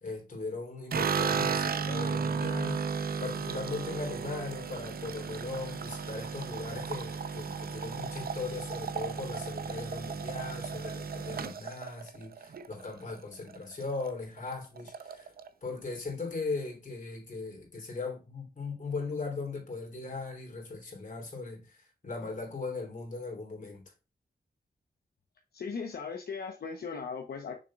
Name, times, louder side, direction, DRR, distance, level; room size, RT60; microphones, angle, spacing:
voice 1, 0.0-2.8 3.2-15.3 15.6-23.8, left 3 dB, 50° left, 3.2 m, -38 dB
sound 1, 0.9-13.2 13.5-14.1 14.4-14.5 14.8-15.5, right 6 dB, 65° right, 0.7 m, -34 dB
voice 2, 25.5-27.5, left 5 dB, 75° left, 0.9 m, -38 dB
6.6 x 6.3 x 2.4 m
wide cardioid pair, 120°, 16 cm